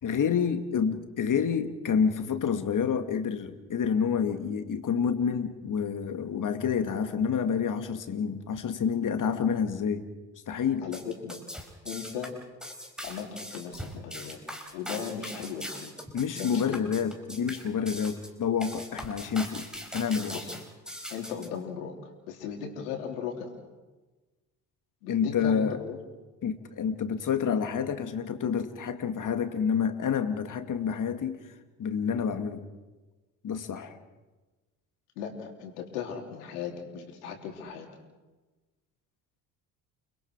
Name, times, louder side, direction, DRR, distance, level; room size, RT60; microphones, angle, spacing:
voice 1, 0.0-10.0 10.5-10.9 16.1-19.7 19.9-20.4 25.1-25.8 26.4-31.4 31.8-32.6 33.4-33.9, left 7 dB, 40° left, 8 dB, 2.3 m, -28 dB
voice 2, 10.8-11.4 11.9-12.4 13.0-14.4 14.7-16.0 16.3-16.8 20.3-20.5 21.1-23.5 25.0-26.0 35.2-37.9, left 7 dB, 75° left, 2 dB, 3.6 m, -37 dB
sound 1, 10.8-21.5, equal, ahead, 4.2 m, -40 dB
30.0 x 21.5 x 4.8 m, 1.2 s
hypercardioid pair, 55°, 46 cm